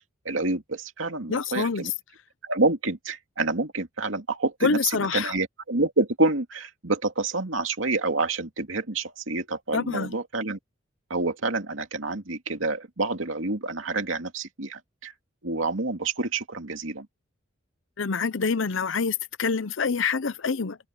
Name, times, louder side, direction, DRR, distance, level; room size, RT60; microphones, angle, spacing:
voice 1, 0.2-1.9 2.4-10.6 11.1-15.1 15.4-17.1, right 3 dB, 85° right, 2.5 m, -28 dB
voice 2, 1.3-1.9 4.6-5.3 9.7-10.1 18.0-20.8, left 5 dB, 75° left, 0.8 m, -26 dB
head